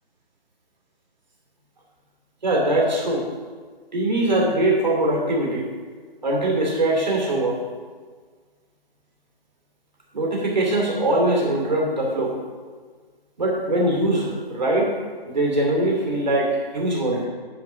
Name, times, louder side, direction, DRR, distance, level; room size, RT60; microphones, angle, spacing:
voice 1, 2.4-3.3 3.9-5.7 6.2-7.6 10.1-12.4 13.4-15.0 15.3-17.3, right 1 dB, 45° right, -2 dB, 2.6 m, -22 dB
9.6 x 4.5 x 6.3 m, 1.6 s
hypercardioid pair, 175°, 30 cm